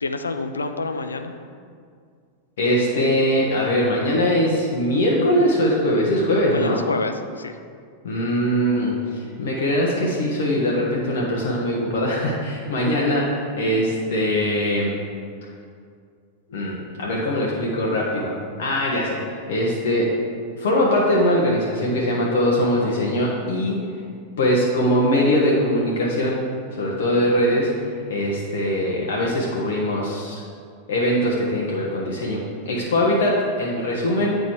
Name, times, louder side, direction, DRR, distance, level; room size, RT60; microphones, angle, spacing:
voice 1, 0.0-1.4 6.5-7.6, left 3 dB, 75° left, 8 dB, 0.5 m, -28 dB
voice 2, 2.6-6.8 8.0-14.9 16.5-20.1 20.5-23.8 24.4-26.4 26.7-27.7 28.1-30.4 30.9-34.4, equal, 60° left, -4 dB, 1.2 m, -21 dB
8.4 x 5.1 x 4.7 m, 2.2 s
figure-of-eight pair, 90°, 0 cm